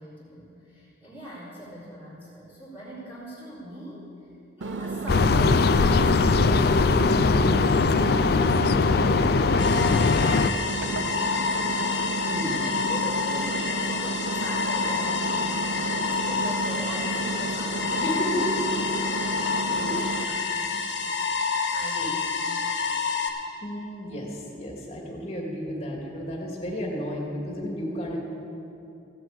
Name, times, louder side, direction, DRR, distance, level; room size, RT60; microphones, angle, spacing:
voice 1, 0.0-4.1 4.6-7.2 8.0-12.3 12.6-18.0 19.3-21.2 21.7-22.4, equal, 10° right, -11 dB, 3.8 m, -42 dB
Engine, 4.6-20.2, right 3 dB, 75° right, 0.7 m, -32 dB
sound 1, 5.1-10.5, left 4 dB, 50° left, 0.4 m, -20 dB
voice 2, 7.1-7.8 8.1-8.3 12.3-12.6 17.9-18.6 19.0-19.4 19.7-19.9 21.9-22.1 23.6-28.2, equal, 35° left, -1 dB, 2.2 m, -33 dB
sound 2, 9.6-23.3, left 5 dB, 70° left, 1.5 m, -28 dB
14.5 x 7.6 x 8.1 m, 2.8 s
head